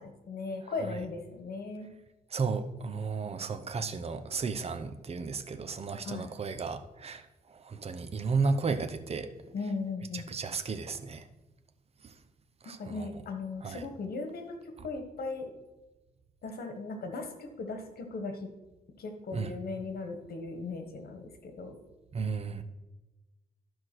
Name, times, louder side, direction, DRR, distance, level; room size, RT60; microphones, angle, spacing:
voice 1, 0.0-1.9 6.0-6.3 9.5-10.3 12.6-15.5 16.4-18.5 19.0-21.8, left 3 dB, 80° left, 6 dB, 1.4 m, -38 dB
voice 2, 2.3-9.3 10.1-11.3 12.0-12.1 12.6-13.1 13.6-13.8 14.8-14.9 19.3-19.5 22.1-22.6, right 4 dB, 40° right, 9 dB, 0.8 m, -34 dB
12.0 x 4.7 x 6.1 m, 1.1 s
wide cardioid pair, 130°, 16 cm